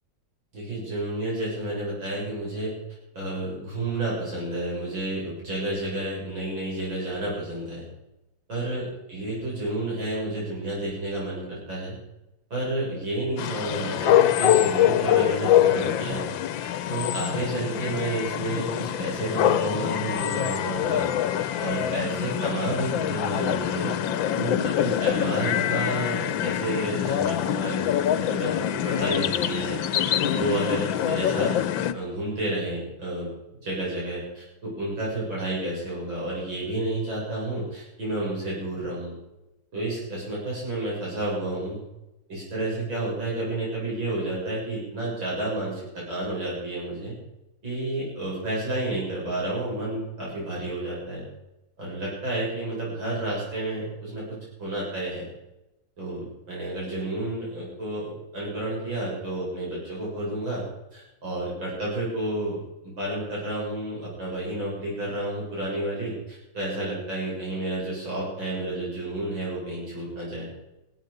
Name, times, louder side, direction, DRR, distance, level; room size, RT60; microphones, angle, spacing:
voice 1, 0.5-2.7 3.1-7.8 8.5-11.9 12.5-16.2 16.6-21.1 21.6-23.9 24.4-31.5 31.9-33.3 33.6-39.1 39.7-41.8 42.3-47.1 47.6-51.2 51.8-55.3 56.0-60.6 60.9-62.6 63.0-70.5, right 1 dB, 80° right, -6 dB, 7.9 m, -31 dB
sound 1, 13.4-31.9, left 11 dB, 80° left, 1.5 m, -25 dB
16.5 x 13.5 x 5.3 m, 0.93 s
omnidirectional pair, 2.1 m